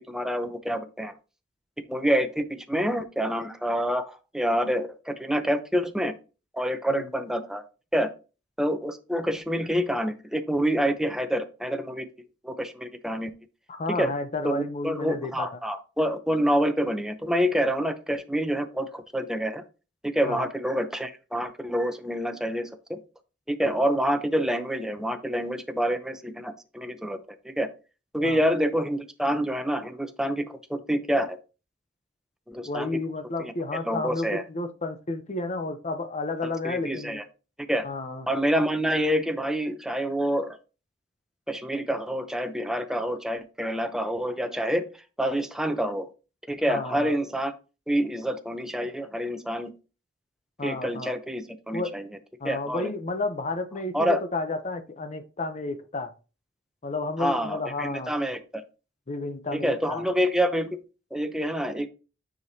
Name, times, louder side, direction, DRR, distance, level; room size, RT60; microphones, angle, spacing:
voice 1, 0.1-1.1 1.9-6.1 6.5-7.6 7.9-8.1 8.6-12.1 12.4-13.3 13.9-14.1 14.4-19.6 20.0-23.0 23.5-27.2 27.4-27.7 28.1-31.4 32.5-32.9 33.4-33.5 33.8-34.4 36.4-37.2 37.7-37.8 38.3-40.6 41.5-44.9 45.2-46.1 46.5-47.5 47.9-49.7 50.6-52.1 52.4-52.9 53.9-54.2 57.2-58.6 59.5-60.7 61.1-61.9, equal, 5° right, 0.7 m, -27 dB
voice 2, 13.7-15.5 20.3-20.5 28.2-28.4 32.7-37.2 37.8-38.3 46.7-47.2 50.6-51.1 51.7-51.9 52.4-56.1 56.8-58.1 59.1-60.0, left 2 dB, 40° left, 0.7 m, -31 dB
9.4 x 5.0 x 2.8 m
head